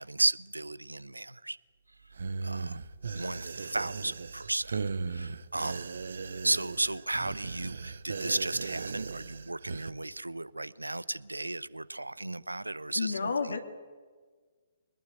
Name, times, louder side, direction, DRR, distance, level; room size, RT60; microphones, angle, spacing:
voice 1, 0.0-1.6 2.4-2.8 3.1-4.8 5.1-5.9 6.4-13.3, right 2 dB, 85° right, 20 dB, 0.7 m, -34 dB
sound 1, 2.1-9.9, right 4 dB, 65° right, 1.0 m, -37 dB
voice 2, 12.9-13.6, left 4 dB, 70° left, 4 dB, 2.5 m, -30 dB
22.5 x 20.0 x 9.1 m, 1.5 s
figure-of-eight pair, 130°, 0 cm